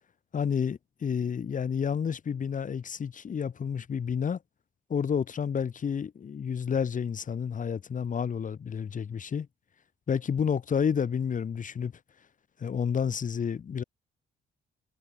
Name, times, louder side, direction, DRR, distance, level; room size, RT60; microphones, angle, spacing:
voice 1, 0.3-4.4 4.9-9.5 10.1-11.9 12.6-13.8, left 7 dB, 40° left, 1.1 m, -30 dB
cardioid pair, 90°, 20 cm